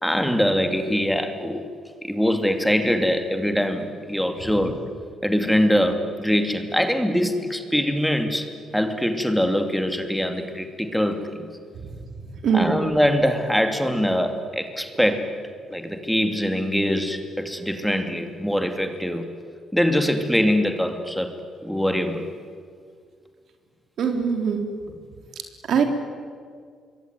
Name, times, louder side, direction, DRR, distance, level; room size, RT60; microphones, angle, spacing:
voice 1, 0.0-1.6 2.0-4.8 5.2-11.5 12.5-15.3 15.7-19.3 19.7-21.3 21.6-22.3, equal, ahead, 7 dB, 2.5 m, -23 dB
voice 2, 12.4-12.8 24.0-24.6 25.7-25.8, right 6 dB, 65° right, 5 dB, 3.6 m, -21 dB
26.0 x 22.5 x 9.4 m, 2.1 s
cardioid pair, 90°, 0 cm